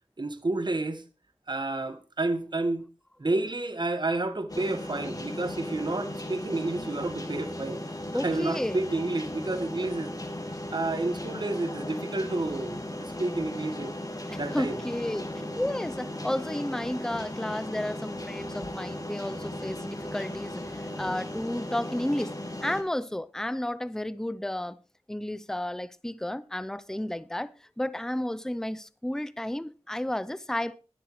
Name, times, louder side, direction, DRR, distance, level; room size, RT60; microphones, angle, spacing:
voice 1, 0.2-1.0 1.5-2.8 3.2-7.8 8.1-10.1 10.7-13.9 14.4-14.8, right 2 dB, 45° right, 1.5 m, -30 dB
sound 1, 4.5-22.8, left 1 dB, 35° left, 2.7 m, -37 dB
voice 2, 8.1-8.8 14.2-22.3 22.6-24.8 25.1-30.8, left 1 dB, 5° left, 0.6 m, -32 dB
21.0 x 8.0 x 3.1 m
wide cardioid pair, 60°, 11 cm